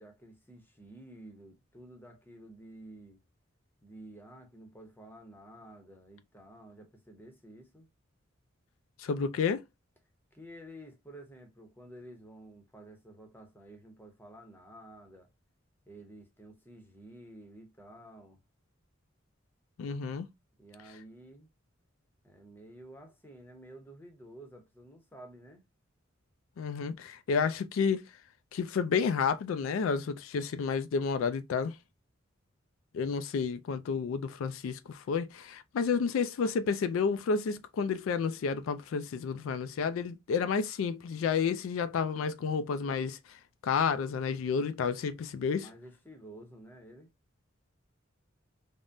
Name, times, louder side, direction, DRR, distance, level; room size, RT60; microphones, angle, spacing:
voice 1, 0.0-3.2 3.8-7.9 10.3-15.3 15.9-18.4 20.6-21.5 22.2-25.6 45.5-47.1, right 1 dB, 10° left, 0.7 m, -51 dB
voice 2, 9.0-9.6 19.8-20.3 26.6-28.0 28.5-31.8 32.9-45.7, left 5 dB, 85° left, 0.3 m, -31 dB
3.4 x 2.1 x 2.5 m
head